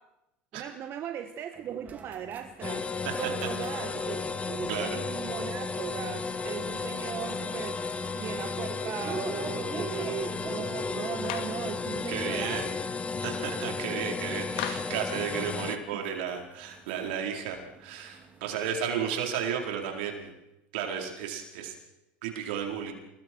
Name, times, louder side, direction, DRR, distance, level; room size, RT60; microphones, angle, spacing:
voice 1, 0.5-4.2 4.5-7.8 8.1-12.7 13.7-13.8 15.7-16.0, right 9 dB, 50° right, 6 dB, 1.5 m, -38 dB
sound 1, 1.5-19.1, right 4 dB, 30° right, 2.9 m, -47 dB
sound 2, 2.6-15.8, left 4 dB, 25° left, 1.6 m, -34 dB
voice 2, 4.7-5.0 12.1-12.7 13.2-20.3 20.7-21.7 22.2-22.9, right 8 dB, 75° right, 2 dB, 4.2 m, -33 dB
Clapping, 11.2-11.6 14.6-15.0, left 11 dB, 75° left, 2.2 m, -35 dB
28.5 x 20.5 x 4.7 m, 0.92 s
hypercardioid pair, 85°, 5 cm